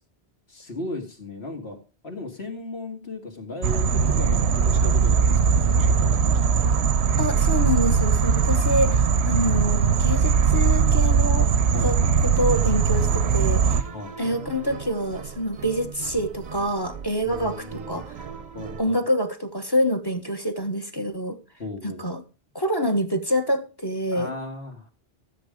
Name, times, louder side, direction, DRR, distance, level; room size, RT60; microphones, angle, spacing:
voice 1, 0.5-1.8 2.0-6.4 11.7-12.2 13.9-14.1 17.3-18.0 18.5-19.0 21.6-22.0 24.1-24.9, left 2 dB, 70° left, 3 dB, 2.7 m, -36 dB
sound 1, 3.6-13.8, right 6 dB, 90° right, 1.0 m, -20 dB
voice 2, 7.2-13.8 14.2-18.1 18.8-21.4 21.8-22.2 22.5-24.3, equal, 25° left, 10 dB, 1.1 m, -26 dB
sound 2, 12.5-18.8, right 7 dB, 45° right, 0.8 m, -39 dB
13.5 x 7.5 x 5.1 m, 0.33 s
omnidirectional pair, 1.1 m